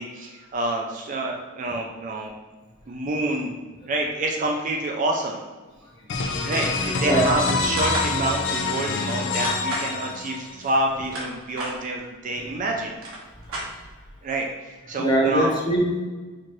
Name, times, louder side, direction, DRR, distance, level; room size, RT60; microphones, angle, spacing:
voice 1, 0.0-2.3 2.9-3.5 3.9-5.4 6.4-12.9 14.2-15.5, right 2 dB, 40° right, 1 dB, 0.4 m, -27 dB
sound 1, 6.1-10.7, left 4 dB, 60° left, 0.4 m, -26 dB
voice 2, 7.0-7.4 13.5-13.6 15.0-15.8, right 1 dB, 20° left, -4 dB, 0.8 m, -21 dB
sound 2, 7.8-8.1 9.4-9.9 10.8-11.7 12.6-12.7 12.9-14.1, right 1 dB, 85° right, 1.1 m, -32 dB
4.4 x 2.5 x 3.0 m, 1.3 s
head